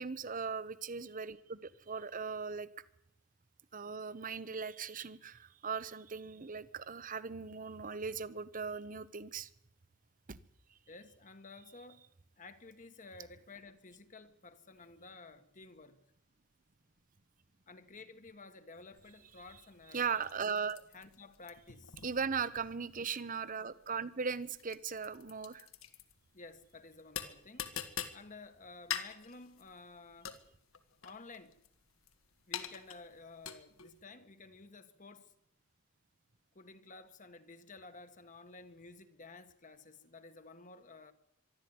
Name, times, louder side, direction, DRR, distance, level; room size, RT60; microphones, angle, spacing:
voice 1, 0.0-2.7 3.7-9.5 10.3-10.4 19.9-20.8 22.0-25.7, right 5 dB, 40° right, 0.9 m, -38 dB
voice 2, 10.9-12.0 12.4-16.0 17.7-20.2 20.9-22.0 26.3-27.8 28.1-30.3 31.0-31.6 32.5-35.3 36.5-41.1, left 3 dB, 35° left, 1.4 m, -53 dB
sound 1, 18.9-34.0, left 9 dB, 75° left, 1.9 m, -46 dB
24.0 x 12.5 x 9.5 m
head